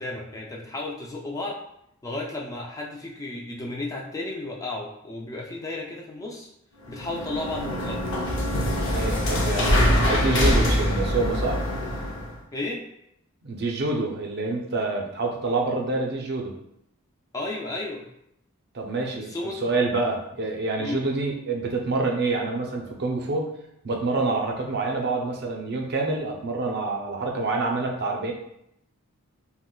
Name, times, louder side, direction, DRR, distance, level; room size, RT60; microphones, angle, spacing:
voice 1, 0.0-1.6 2.0-6.5 6.9-8.1 12.5-12.8 17.3-18.0 19.2-19.6 20.8-21.0, left 2 dB, 15° left, -1 dB, 0.3 m, -33 dB
sound 1, 6.8-12.3, equal, 60° left, 0.6 m, -24 dB
voice 2, 8.9-11.6 13.4-16.5 18.7-23.4 23.8-28.3, right 3 dB, 50° right, 1 dB, 0.5 m, -27 dB
2.4 x 2.1 x 3.7 m, 0.78 s
head